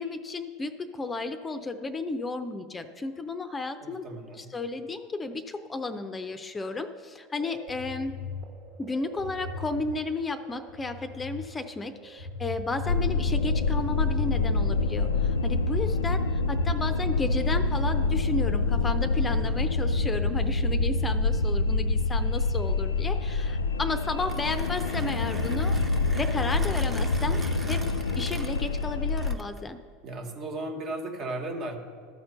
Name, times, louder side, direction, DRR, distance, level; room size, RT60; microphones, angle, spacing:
voice 1, 0.0-4.1 4.3-8.2 8.8-25.8 26.1-27.9 28.2-29.8, left 3 dB, 20° left, 9 dB, 0.6 m, -33 dB
voice 2, 3.8-4.5 19.3-19.7 30.0-31.8, right 2 dB, 45° right, 3 dB, 1.3 m, -36 dB
sound 1, 7.3-16.0, left 3 dB, 65° right, 1.4 m, -40 dB
sound 2, 12.8-29.3, left 3 dB, 85° left, 0.3 m, -26 dB
Mechanisms, 24.2-29.7, right 3 dB, 20° right, 0.8 m, -44 dB
12.5 x 4.4 x 6.7 m, 2.1 s
hypercardioid pair, 80°, 0 cm